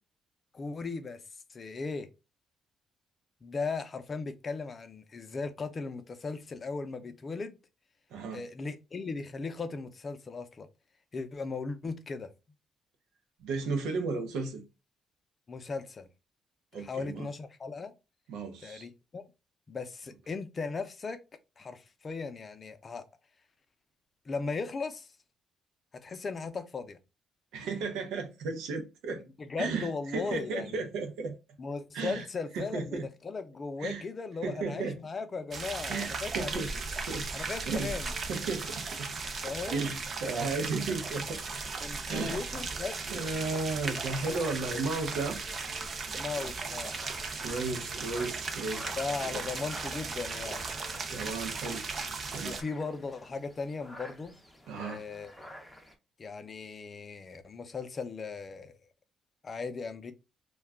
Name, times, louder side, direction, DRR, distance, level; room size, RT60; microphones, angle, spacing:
voice 1, 0.5-1.2 1.5-2.1 3.4-7.6 8.3-10.7 11.1-12.3 15.5-16.1 16.7-17.9 18.6-19.3 19.7-21.2 21.6-23.0 24.3-25.1 26.0-27.0 29.4-30.9 31.6-36.6 37.3-38.1 39.4-39.9 41.8-43.7 46.1-46.9 49.0-50.7 52.4-54.3 54.8-55.5 56.2-58.8 59.4-60.1, left 4 dB, 40° left, 0.5 m, -37 dB
voice 2, 8.1-8.4 13.4-14.6 16.7-17.3 18.3-18.9 27.5-29.2 29.6-31.3 31.9-32.2 32.5-33.1 33.8-34.0 34.4-35.0 35.9-36.7 37.1-37.3 37.7-37.9 38.3-39.1 39.7-41.4 42.1-42.4 43.1-45.4 47.4-48.9 49.3-49.4 51.1-51.8 52.3-52.6 54.7-55.0, right 4 dB, 90° right, 0.7 m, -34 dB
sound 1, 35.5-52.6, right 4 dB, 50° right, 0.5 m, -37 dB
sound 2, 46.3-55.9, left 1 dB, ahead, 0.6 m, -50 dB
2.3 x 2.2 x 3.5 m
cardioid pair, 90°, 0 cm